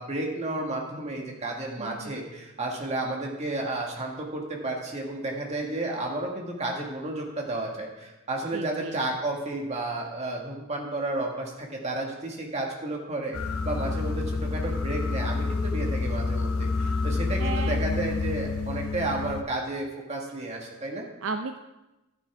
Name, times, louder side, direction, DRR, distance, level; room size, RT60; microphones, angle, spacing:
voice 1, 0.0-21.1, right 2 dB, 30° right, 0 dB, 1.7 m, -32 dB
voice 2, 1.8-2.2 8.5-9.0 13.8-14.2 17.4-17.8 21.2-21.6, right 4 dB, 65° right, 7 dB, 0.4 m, -35 dB
sound 1, 13.3-19.4, left 3 dB, 85° left, 0.7 m, -28 dB
12.0 x 9.7 x 3.5 m, 1.0 s
head